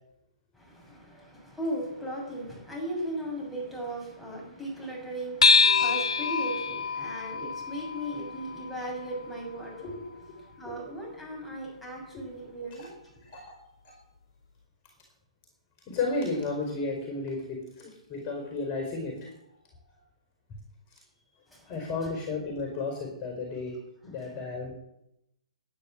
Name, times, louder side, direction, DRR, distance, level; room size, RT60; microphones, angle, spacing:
voice 1, 0.5-9.9 10.4-12.9 21.5-21.7, right 1 dB, ahead, -4 dB, 6.8 m, -37 dB
sound 1, 5.4-10.2, left 4 dB, 75° left, 2.6 m, -26 dB
voice 2, 9.8-10.4 12.1-12.2 12.8-12.9 13.2-13.5 13.8-13.9 15.9-19.3 21.6-23.8 24.0-24.7, left 3 dB, 30° left, 2 dB, 4.6 m, -33 dB
11.5 x 9.9 x 7.5 m, 0.83 s
hypercardioid pair, 130°, 3 cm